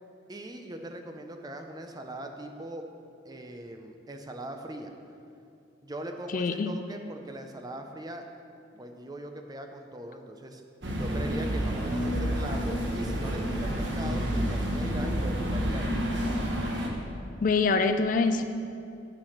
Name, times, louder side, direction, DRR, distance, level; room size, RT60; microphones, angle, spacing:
voice 1, 0.3-2.9 3.2-4.9 5.8-8.3 8.7-10.6 10.9-15.9, right 1 dB, 20° right, 4 dB, 0.6 m, -40 dB
voice 2, 6.3-6.8 10.9-11.0 17.4-18.4, left 4 dB, 45° left, 9 dB, 0.4 m, -25 dB
sound 1, 10.8-16.9, equal, 65° right, 1.2 m, -29 dB
8.9 x 6.3 x 5.8 m, 2.6 s
head